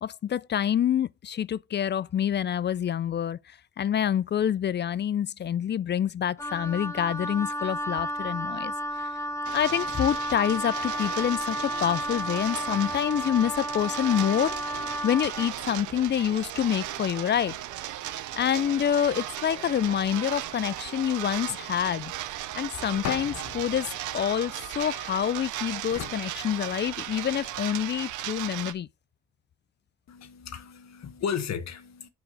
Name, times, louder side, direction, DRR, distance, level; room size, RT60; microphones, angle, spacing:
voice 1, 0.0-3.4 3.8-8.7 9.5-14.6 15.0-17.6 18.3-22.1 22.6-23.9 24.1-28.9, left 9 dB, 35° left, 0.4 m, -27 dB
Wind instrument woodwind instrument, 6.4-15.6, equal, 10° left, 1.0 m, -32 dB
sound 1, 9.4-28.7, right 13 dB, 80° right, 0.8 m, -37 dB
sound 2, 23.0-25.2 25.9-27.3, left 9 dB, 80° left, 1.3 m, -39 dB
voice 2, 30.1-32.1, left 7 dB, 60° left, 1.5 m, -34 dB
6.2 x 5.0 x 6.4 m
cardioid pair, 90°, 30 cm